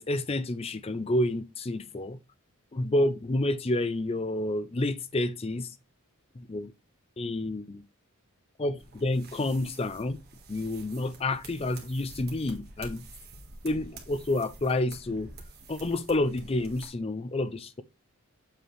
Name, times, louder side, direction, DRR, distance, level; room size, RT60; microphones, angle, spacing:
voice 1, 0.0-2.2 2.7-5.7 6.4-6.7 7.2-7.8 8.6-10.2 10.5-13.0 13.6-15.3 15.7-17.8, left 1 dB, 25° left, 0.4 m, -29 dB
sound 1, 8.8-16.9, right 2 dB, 45° right, 1.6 m, -48 dB
7.6 x 3.3 x 4.6 m
head